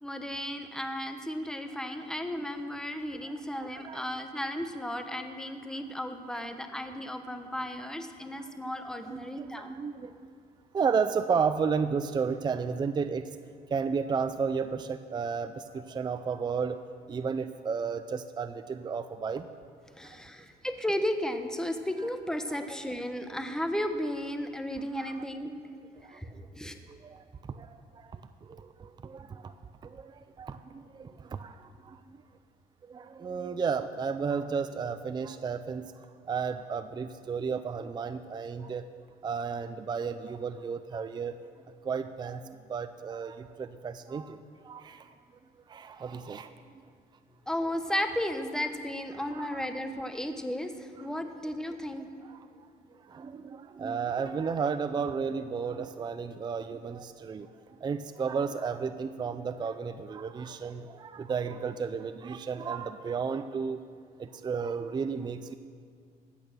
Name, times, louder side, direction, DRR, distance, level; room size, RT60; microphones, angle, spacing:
voice 1, 0.0-9.7 19.9-25.5 26.1-26.7 47.5-52.1, equal, 5° left, 7 dB, 1.0 m, -34 dB
voice 2, 3.2-4.1 8.4-8.5 9.1-10.3 10.7-13.4 13.7-19.5 20.0-20.2 25.0-25.2 26.0-26.3 26.9-29.5 29.8-32.2 32.8-35.9 36.3-38.9 39.2-41.4 41.8-45.1 45.7-46.5 49.1-49.6 52.2-63.8 64.2-65.5, right 5 dB, 25° right, 11 dB, 0.5 m, -33 dB
15.5 x 8.5 x 6.1 m, 2.1 s
cardioid pair, 110°, 17 cm